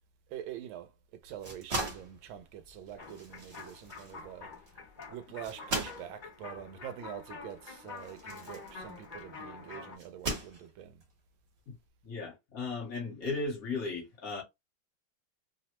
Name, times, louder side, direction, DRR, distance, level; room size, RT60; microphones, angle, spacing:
voice 1, 0.3-4.5 5.1-11.0, right 10 dB, 80° right, 1.4 m, -45 dB
sound 1, 1.2-9.3 10.0-11.0, right 2 dB, 40° right, 1.1 m, -40 dB
sound 2, 3.0-10.0, left 4 dB, 30° left, 0.9 m, -47 dB
voice 2, 12.0-14.4, left 3 dB, 50° left, 1.3 m, -36 dB
3.4 x 2.0 x 2.9 m
omnidirectional pair, 2.2 m